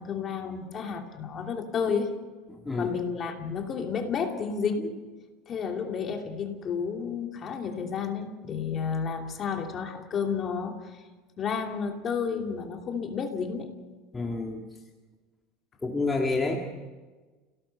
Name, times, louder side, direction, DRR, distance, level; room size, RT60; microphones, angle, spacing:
voice 1, 0.0-2.1 2.8-5.0 5.5-11.0 11.4-13.7, left 6 dB, 30° left, 3 dB, 2.8 m, -31 dB
voice 2, 2.5-2.9 14.1-14.6 15.8-16.6, left 3 dB, 10° left, 0 dB, 1.8 m, -28 dB
29.5 x 17.5 x 6.8 m, 1.3 s
supercardioid pair, 150°, 0 cm